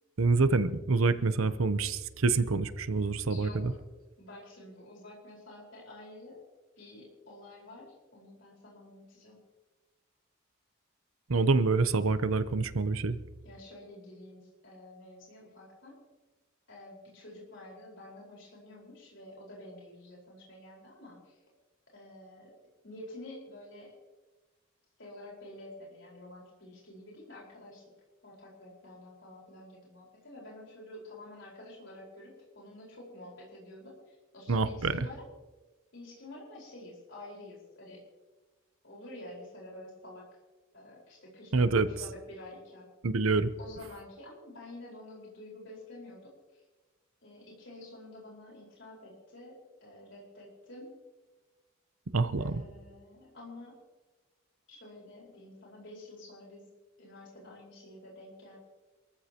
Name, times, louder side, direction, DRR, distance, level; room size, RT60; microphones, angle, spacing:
voice 1, 0.2-3.7 11.3-13.2 34.5-35.1 41.5-41.9 43.0-43.5 52.1-52.6, right 3 dB, 85° right, 13 dB, 0.8 m, -26 dB
voice 2, 3.3-3.8 4.2-6.4 6.8-9.4 13.4-16.0 16.7-21.4 21.9-22.5 22.8-23.9 25.0-27.9 28.2-35.3 35.9-38.0 38.8-40.2 40.7-42.9 43.6-46.6 47.2-51.0 52.4-53.8 54.7-56.7 57.0-58.6, left 1 dB, 60° left, -3 dB, 4.7 m, -49 dB
28.0 x 14.5 x 2.9 m, 1.2 s
head